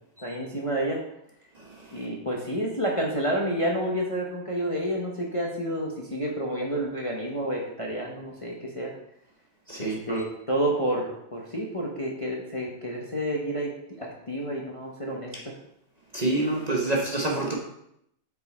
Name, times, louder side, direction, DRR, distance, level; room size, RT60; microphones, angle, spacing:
voice 1, 0.2-1.0 1.9-8.9 9.8-13.7 14.0-15.5, right 1 dB, 30° left, -2 dB, 0.6 m, -29 dB
voice 2, 9.7-10.2 16.1-17.6, right 2 dB, 35° right, -2 dB, 0.7 m, -27 dB
6.6 x 4.7 x 4.1 m, 0.77 s
omnidirectional pair, 1.8 m